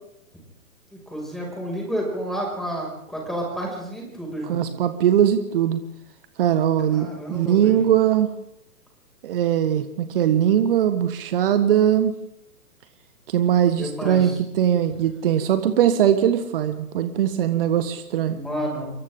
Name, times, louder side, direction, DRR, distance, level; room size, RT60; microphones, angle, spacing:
voice 1, 1.1-4.6 6.9-7.8 13.8-14.4 18.2-18.9, equal, ahead, -1 dB, 6.3 m, -30 dB
voice 2, 4.5-5.8 6.4-8.3 9.2-12.1 13.3-18.4, right 10 dB, 35° right, 10 dB, 1.6 m, -20 dB
28.5 x 24.0 x 3.9 m, 0.80 s
figure-of-eight pair, 125°, 46 cm